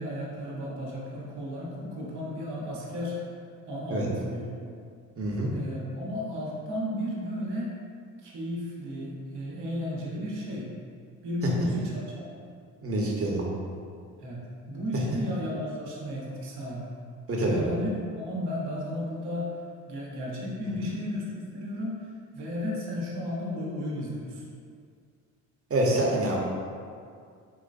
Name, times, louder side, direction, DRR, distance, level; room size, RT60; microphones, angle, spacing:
voice 1, 0.0-3.2 3.7-4.5 5.5-7.7 8.2-10.7 11.2-12.2 14.2-16.9 17.4-19.6 19.8-22.0 22.3-24.4, left 1 dB, 65° right, -4 dB, 1.2 m, -34 dB
voice 2, 5.2-5.5 12.8-13.5 17.3-17.6 25.7-26.4, right 1 dB, 30° right, -2 dB, 1.1 m, -26 dB
5.2 x 3.0 x 2.6 m, 2.2 s
hypercardioid pair, 60°, 43 cm